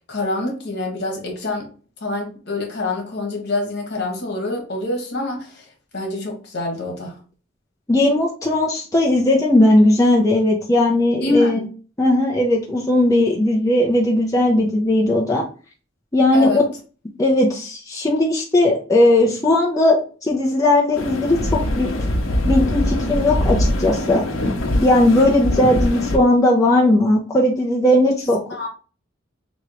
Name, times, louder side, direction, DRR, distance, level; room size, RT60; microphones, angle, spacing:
voice 1, 0.1-1.7 2.0-5.5 5.9-7.2 11.2-11.6 16.3-16.6 28.5-28.7, left 2 dB, 55° left, 1.4 m, -25 dB
voice 2, 7.9-11.6 12.0-15.4 16.1-16.6 17.2-21.4 21.8-21.9 22.4-24.2 24.8-28.4, left 1 dB, 15° left, 0.7 m, -17 dB
sound 1, 20.9-26.2, left 1 dB, 85° left, 0.8 m, -22 dB
3.6 x 2.9 x 3.1 m
head